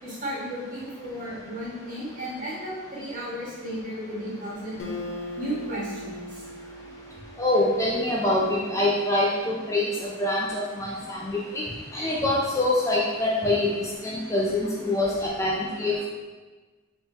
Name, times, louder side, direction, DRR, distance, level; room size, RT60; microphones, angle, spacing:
voice 1, 0.0-4.9 5.4-6.4 10.5-10.6 12.2-12.3 12.9-13.0, equal, 40° right, -7 dB, 1.5 m, -34 dB
Acoustic guitar, 4.8-8.3, left 1 dB, 65° left, 0.8 m, -39 dB
voice 2, 7.4-9.9 10.2-11.6 11.9-16.1, left 2 dB, 15° left, -4 dB, 0.3 m, -25 dB
3.7 x 2.9 x 3.9 m, 1.3 s
head